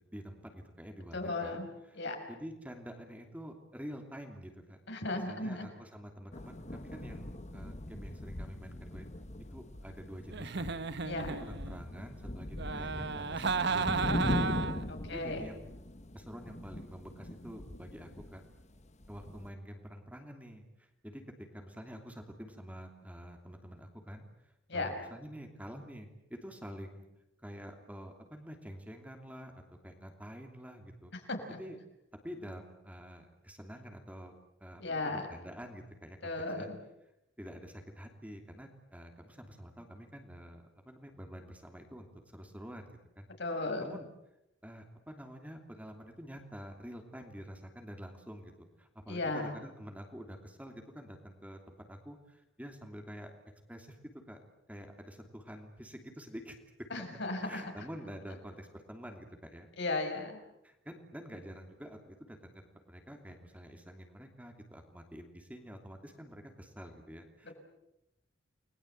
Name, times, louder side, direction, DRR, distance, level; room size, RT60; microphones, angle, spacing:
voice 1, 0.1-1.6 1.9-2.0 2.3-4.8 5.3-9.0 9.5-11.0 11.5-14.6 14.8-15.6 16.1-18.4 19.1-27.1 27.4-31.1 31.5-31.8 32.2-34.3 34.6-36.7 37.4-43.3 43.8-44.1 44.6-53.3 53.7-54.0 54.3-54.4 54.7-56.6 56.9-57.0 57.4-59.7 60.6-62.6 62.9-67.5, equal, 10° right, 4 dB, 2.9 m, -48 dB
voice 2, 1.1-1.7 2.0-2.2 4.9-5.7 11.0-11.4 14.9-15.5 24.7-24.9 31.3-31.6 34.8-35.2 36.2-36.8 43.4-44.0 49.1-49.6 56.9-57.6 59.8-60.4, left 2 dB, 65° left, 4 dB, 5.7 m, -35 dB
sound 1, 6.3-19.5, left 1 dB, 35° left, 1.3 m, -40 dB
Giggle, 10.3-11.8 12.6-14.9, right 4 dB, 60° right, 1.2 m, -34 dB
30.0 x 21.0 x 8.1 m, 0.88 s
head